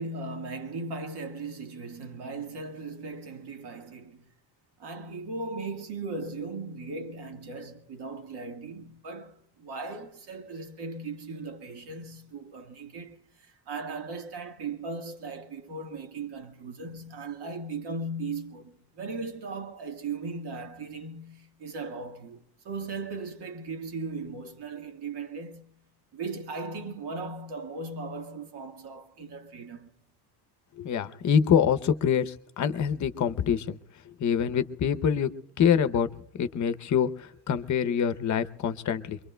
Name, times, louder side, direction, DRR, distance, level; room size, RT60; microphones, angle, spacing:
voice 1, 0.0-4.3 4.8-25.7 26.1-29.9, right 3 dB, 75° right, 1.7 m, -38 dB
voice 2, 30.8-33.8 34.2-35.3 35.6-36.1 36.4-39.2, left 8 dB, 45° left, 0.7 m, -25 dB
24.5 x 23.5 x 2.2 m
cardioid pair, 165°, 40 cm